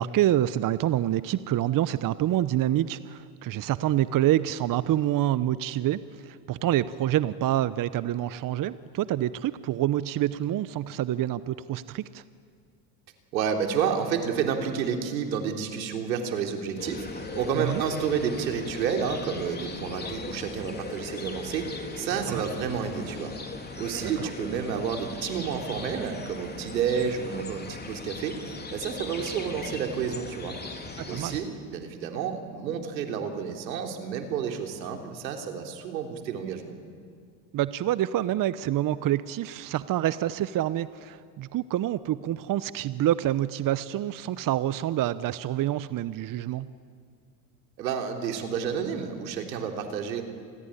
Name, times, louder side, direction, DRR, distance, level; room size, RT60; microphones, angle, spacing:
voice 1, 0.0-12.2 17.6-17.8 22.3-22.4 24.0-24.3 31.0-31.4 37.5-46.7, right 13 dB, 40° right, 15 dB, 0.9 m, -27 dB
voice 2, 13.3-23.3 23.8-30.6 31.1-36.7 47.8-50.2, right 7 dB, 85° right, 3 dB, 3.5 m, -30 dB
sound 1, 16.8-31.4, left 3 dB, 20° left, 3.8 m, -38 dB
28.5 x 21.0 x 9.9 m, 2.2 s
hypercardioid pair, 85°, 50 cm